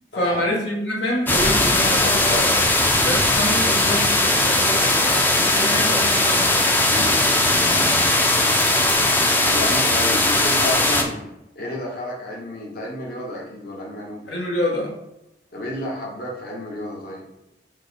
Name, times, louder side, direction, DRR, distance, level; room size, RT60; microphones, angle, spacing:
voice 1, 0.2-2.7 3.0-6.7 14.3-14.9, left 1 dB, 80° left, -3 dB, 1.0 m, -26 dB
sound 1, 1.3-11.0, left 2 dB, 10° left, 0.4 m, -19 dB
voice 2, 9.4-11.2 11.5-14.2 15.5-17.2, left 1 dB, 60° left, -3 dB, 1.0 m, -31 dB
4.9 x 2.1 x 4.0 m, 0.89 s
head